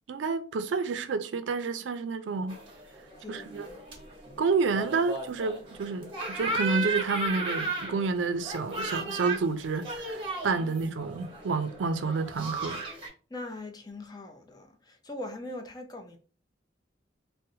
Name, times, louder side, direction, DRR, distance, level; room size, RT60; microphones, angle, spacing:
voice 1, 0.1-2.6 3.3-3.7 4.4-12.8, right 4 dB, 85° right, 0.4 m, -29 dB
sound 1, 2.5-13.1, right 3 dB, 30° right, 1.0 m, -35 dB
voice 2, 3.2-3.8 10.5-10.7 13.3-16.2, left 2 dB, 20° left, 0.5 m, -41 dB
3.9 x 2.1 x 2.7 m
head